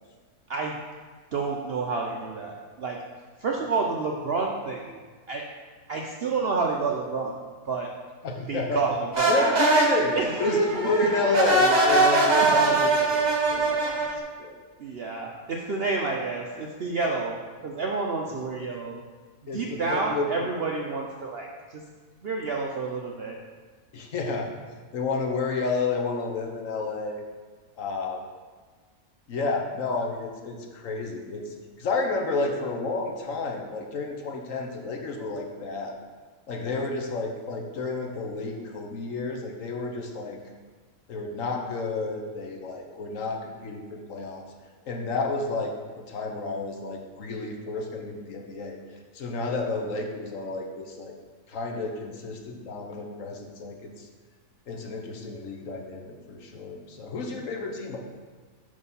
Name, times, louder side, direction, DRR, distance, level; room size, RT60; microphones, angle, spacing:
voice 1, 1.3-3.0 3.4-5.0 5.3-5.5 5.9-7.9 8.5-9.4 10.2-10.6 10.8-11.0 12.4-12.8 14.8-19.0 19.5-21.8 22.2-23.4, right 4 dB, 60° right, 0 dB, 0.6 m, -29 dB
voice 2, 8.2-8.8 9.3-13.2 13.5-13.8 14.4-14.5 18.6-18.7 19.5-20.5 23.9-24.5 24.9-27.2 27.8-28.2 29.3-36.0 36.5-40.4 41.1-44.5 44.8-48.8 49.1-51.1 51.5-54.1 54.7-58.0, left 3 dB, 60° left, 2 dB, 1.2 m, -30 dB
sound 1, 9.1-14.2, right 3 dB, 30° right, 1.1 m, -22 dB
6.3 x 5.2 x 5.5 m, 1.4 s
omnidirectional pair, 1.6 m